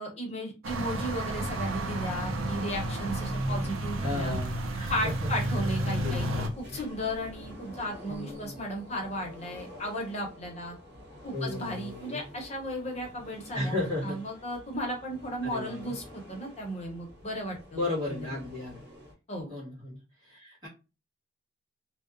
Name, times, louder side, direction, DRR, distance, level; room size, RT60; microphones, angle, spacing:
voice 1, 0.0-4.3 4.9-10.7 11.2-13.7 14.0-17.8 18.1-18.2 19.3-19.5, equal, 35° left, 1 dB, 0.7 m, -35 dB
sound 1, 0.6-6.5, right 1 dB, 80° right, 0.5 m, -31 dB
voice 2, 4.0-5.3 6.0-6.8 8.1-8.6 11.3-12.4 13.5-14.2 15.4-16.0 17.7-18.8 19.5-20.7, left 2 dB, 20° right, -8 dB, 1.5 m, -35 dB
sound 2, 5.8-19.1, equal, 55° right, 1.5 m, -48 dB
2.8 x 2.0 x 2.5 m, 0.30 s
head